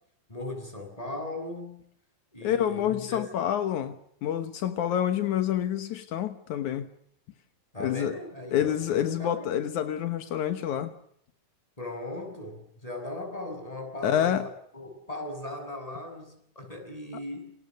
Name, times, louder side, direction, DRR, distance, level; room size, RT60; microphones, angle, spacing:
voice 1, 0.3-1.9 2.3-3.3 7.7-9.7 11.8-17.5, left 2 dB, 10° left, 7.4 m, -38 dB
voice 2, 2.4-6.9 7.8-8.2 8.5-10.9 14.0-14.5, left 10 dB, 80° left, 2.7 m, -28 dB
29.0 x 27.5 x 6.5 m
omnidirectional pair, 3.4 m